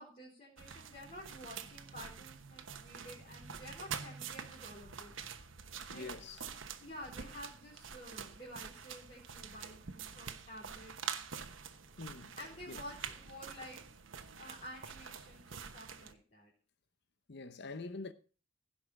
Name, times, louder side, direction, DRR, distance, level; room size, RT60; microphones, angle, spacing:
voice 1, 0.0-5.1 5.9-6.1 6.8-10.9 12.4-13.8 14.3-16.5, equal, 35° left, 3.8 m, -51 dB
sound 1, 0.6-16.1, right 7 dB, 70° right, 1.1 m, -46 dB
voice 2, 5.9-6.4 12.0-12.4 12.7-12.8 17.3-18.1, left 3 dB, 55° left, 0.9 m, -45 dB
16.0 x 5.6 x 6.4 m
head